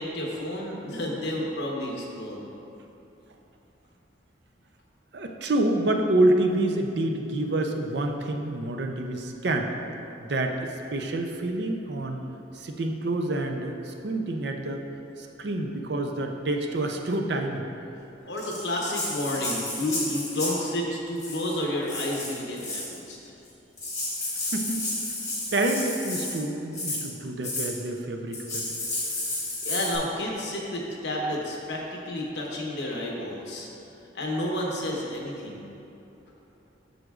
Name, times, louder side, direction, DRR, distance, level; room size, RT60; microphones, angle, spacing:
voice 1, 0.0-2.4 18.3-23.2 29.6-33.7 34.1-35.7, left 1 dB, 65° left, -2 dB, 1.0 m, -31 dB
voice 2, 5.1-9.7 10.2-12.2 12.5-14.8 15.2-17.7 24.4-24.8 25.5-28.8, right 1 dB, 60° right, 3 dB, 0.5 m, -27 dB
Rattle (instrument), 18.4-20.7 21.2-21.5 21.9-22.9 23.5-23.6 23.8-26.4 26.7-27.0 27.4-27.7 28.3-30.0, left 2 dB, 15° left, 1.4 m, -32 dB
7.7 x 6.4 x 2.4 m, 2.9 s
head